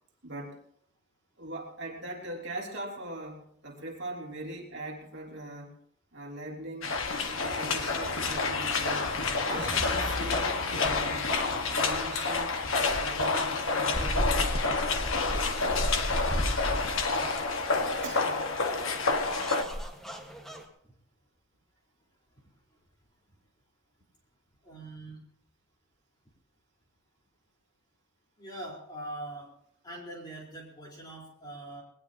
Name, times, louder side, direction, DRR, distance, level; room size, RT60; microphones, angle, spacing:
voice 1, 0.2-0.6 1.4-5.7 6.1-7.0 7.3-9.1 9.4-11.3 11.7-14.6 18.0-18.6 20.4-20.7, right 1 dB, 55° right, -1 dB, 3.3 m, -41 dB
sound 1, 6.8-19.6, left 3 dB, 65° left, 1.6 m, -29 dB
sound 2, 9.5-15.7 16.1-16.2, left 1 dB, 20° right, 1.9 m, -44 dB
sound 3, 13.9-20.6, equal, ahead, 1.6 m, -34 dB
voice 2, 24.6-25.2 28.4-29.5 29.8-31.8, right 1 dB, 20° left, -2 dB, 4.4 m, -42 dB
21.0 x 19.0 x 3.0 m, 0.66 s
head